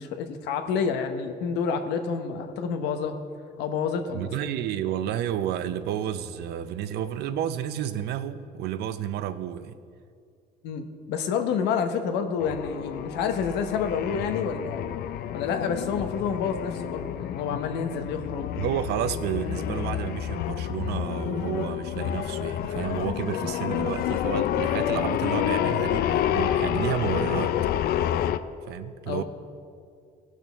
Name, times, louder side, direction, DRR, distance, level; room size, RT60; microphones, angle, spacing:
voice 1, 0.0-3.2 3.6-4.3 10.6-14.8 15.3-18.7 29.1-29.2, left 6 dB, 90° left, 7 dB, 0.9 m, -29 dB
voice 2, 4.1-9.8 18.6-27.6 28.7-29.2, right 10 dB, 75° right, 12 dB, 0.6 m, -31 dB
sound 1, 12.4-28.4, left 11 dB, 65° left, 0.4 m, -29 dB
18.0 x 6.3 x 3.5 m, 2.3 s
cardioid pair, 110°, 17 cm